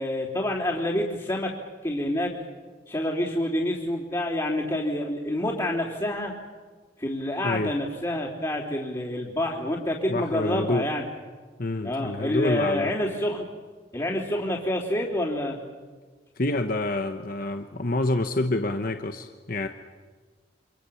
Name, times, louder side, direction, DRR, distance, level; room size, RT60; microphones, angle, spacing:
voice 1, 0.0-1.5 1.8-2.3 2.9-6.3 7.0-11.1 11.8-13.5 13.9-15.6, left 1 dB, 20° left, -6 dB, 3.5 m, -27 dB
voice 2, 10.1-10.9 11.6-12.9 16.4-19.7, left 2 dB, 45° left, 6 dB, 1.1 m, -27 dB
29.0 x 26.0 x 7.2 m, 1.4 s
head